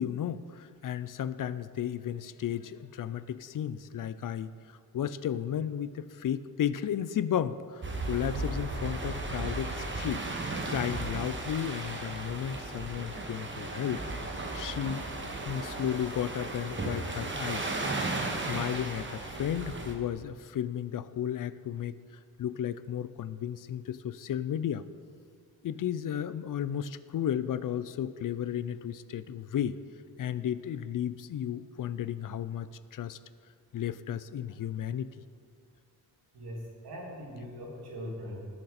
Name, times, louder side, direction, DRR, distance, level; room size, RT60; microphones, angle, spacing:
voice 1, 0.0-10.3 10.7-14.0 14.5-15.0 15.5-17.7 18.3-22.0 22.4-24.8 25.6-29.8 30.2-33.2 33.7-35.1, left 9 dB, 60° left, 14 dB, 0.5 m, -33 dB
sound 1, 7.8-19.9, right 2 dB, 30° right, 1.3 m, -35 dB
voice 2, 36.3-38.5, equal, 85° right, -3 dB, 3.0 m, -41 dB
18.5 x 6.5 x 4.3 m, 2.1 s
wide cardioid pair, 130°, 38 cm